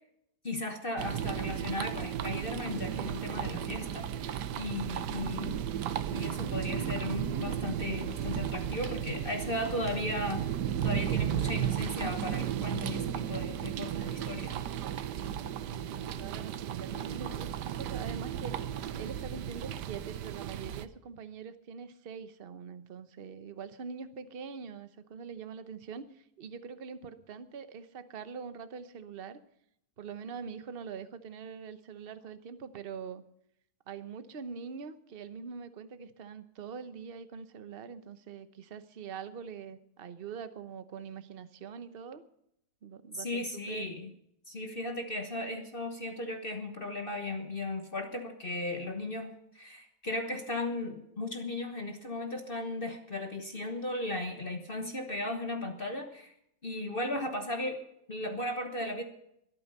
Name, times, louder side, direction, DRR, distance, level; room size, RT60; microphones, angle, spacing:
voice 1, 0.4-5.6 6.1-10.4 10.8-14.6 43.1-44.1 44.5-56.3 56.6-57.8 58.1-59.0, left 2 dB, 35° left, 5 dB, 1.3 m, -36 dB
sound 1, 1.0-20.9, right 9 dB, 85° right, 1.4 m, -34 dB
sound 2, 8.8-9.1 9.7-10.1, equal, 10° right, 2.2 m, -47 dB
voice 2, 15.6-18.6 18.9-29.4 30.0-33.2 33.9-42.2 42.8-44.0, right 6 dB, 40° right, 11 dB, 1.0 m, -44 dB
22.0 x 8.9 x 5.5 m, 0.75 s
omnidirectional pair, 1.8 m